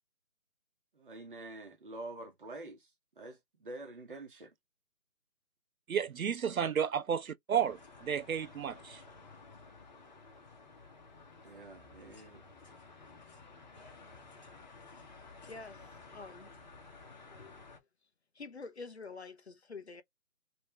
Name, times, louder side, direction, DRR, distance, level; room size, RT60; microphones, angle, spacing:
voice 1, 0.9-2.9 3.2-4.5 11.4-12.4, right 2 dB, 35° right, 1.1 m, -47 dB
voice 2, 5.9-9.0, right 8 dB, 65° right, 0.5 m, -32 dB
sound 1, 7.5-17.8, left 3 dB, 30° left, 1.0 m, -54 dB
voice 3, 15.4-16.5 17.2-17.7 18.3-20.0, left 4 dB, 45° left, 0.7 m, -48 dB
3.1 x 3.1 x 3.2 m
figure-of-eight pair, 160°, 45 cm